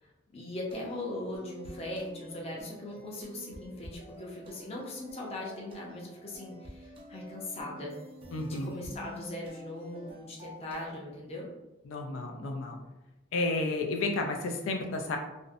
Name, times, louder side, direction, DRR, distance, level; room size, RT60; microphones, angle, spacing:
voice 1, 0.0-7.9 8.5-11.5, left 1 dB, 30° left, -2 dB, 0.5 m, -40 dB
sound 1, 0.7-10.9, equal, 30° right, 0.3 m, -49 dB
voice 2, 8.3-8.7 11.9-12.8 13.3-15.2, left 2 dB, 90° left, 3 dB, 0.4 m, -31 dB
2.6 x 2.0 x 2.5 m, 0.96 s
head